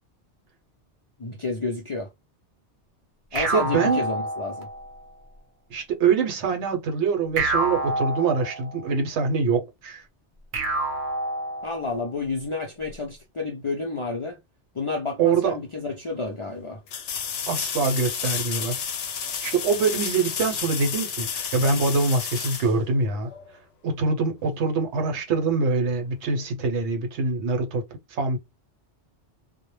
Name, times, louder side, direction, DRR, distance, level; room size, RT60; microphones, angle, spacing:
voice 1, 1.2-2.1 3.3-4.7 11.6-14.4 14.7-16.8, left 3 dB, 55° left, 0.3 m, -30 dB
sound 1, 3.3-5.0 7.4-8.9 10.5-12.0, right 2 dB, 50° right, 0.8 m, -28 dB
voice 2, 3.3-4.0 5.7-10.0 15.2-15.6 17.5-18.9 19.4-23.3 23.8-27.8 28.1-28.4, right 4 dB, 80° right, 0.9 m, -24 dB
sound 2, 15.5-15.6 16.9-23.5 26.3-26.4, left 7 dB, 85° left, 0.9 m, -31 dB
2.1 x 2.0 x 3.0 m
omnidirectional pair, 1.2 m